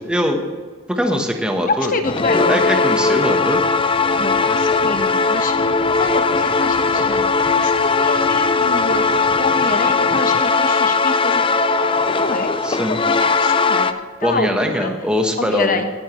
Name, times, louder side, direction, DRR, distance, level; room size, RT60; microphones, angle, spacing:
voice 1, 0.1-0.4 0.9-1.9 2.3-3.6 12.6-13.0 14.2-15.8, equal, 5° right, 3 dB, 1.1 m, -21 dB
voice 2, 1.7-2.6 4.2-7.2 7.5-9.1 9.4-11.7 12.0-12.5 12.9-13.9 14.2-14.9 15.4-15.8, left 3 dB, 45° left, 7 dB, 1.1 m, -26 dB
sound 1, 2.0-13.9, left 4 dB, 25° left, 0.5 m, -18 dB
18.0 x 10.0 x 3.1 m, 1.5 s
head